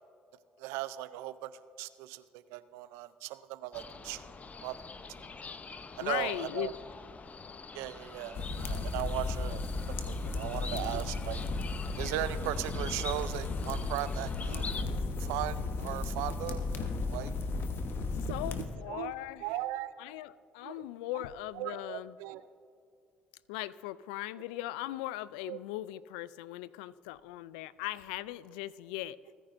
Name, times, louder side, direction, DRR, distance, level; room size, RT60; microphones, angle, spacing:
voice 1, 0.6-1.5 1.8-4.3 4.6-4.8 5.2-5.3 6.0-6.7 7.7-9.6 10.0-11.4 12.0-14.7 15.2-17.3 17.7-17.8 18.9-19.1 19.4-19.9 20.6-20.8 21.1-21.2 21.5-22.4 25.5-25.6, right 15 dB, 80° right, 15 dB, 0.5 m, -38 dB
sound 1, 3.7-14.8, left 4 dB, 35° left, 0.7 m, -45 dB
voice 2, 6.0-6.7 18.3-19.4 20.0-22.1 23.5-29.2, left 15 dB, 85° left, 18 dB, 0.3 m, -39 dB
sound 2, 8.3-18.7, left 3 dB, 55° left, 1.2 m, -35 dB
28.5 x 9.9 x 2.6 m, 2.4 s
hypercardioid pair, 60°, 4 cm